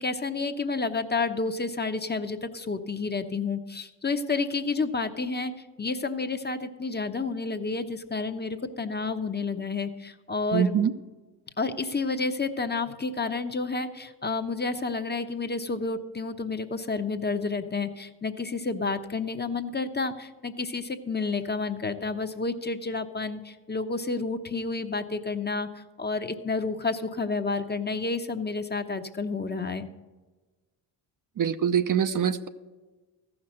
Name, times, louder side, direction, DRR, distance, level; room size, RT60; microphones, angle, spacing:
voice 1, 0.0-5.5 5.8-10.8 11.6-29.9, left 4 dB, 20° left, 7 dB, 0.9 m, -30 dB
voice 2, 10.5-10.9 31.4-32.5, right 8 dB, 45° right, 9 dB, 0.7 m, -24 dB
14.0 x 6.0 x 6.5 m, 1.2 s
hypercardioid pair, 55°, 46 cm